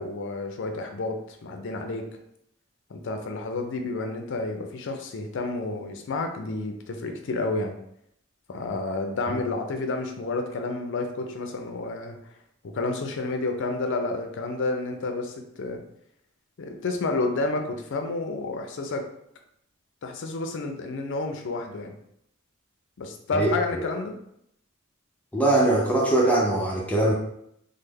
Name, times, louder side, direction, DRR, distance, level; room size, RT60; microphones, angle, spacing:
voice 1, 0.0-2.1 2.9-7.7 8.5-12.3 12.6-15.8 16.6-19.0 20.0-21.9 23.0-24.1, left 3 dB, 60° left, 5 dB, 0.5 m, -30 dB
voice 2, 25.3-27.1, right 1 dB, 5° left, -4 dB, 0.5 m, -21 dB
3.2 x 2.0 x 3.4 m, 0.75 s
head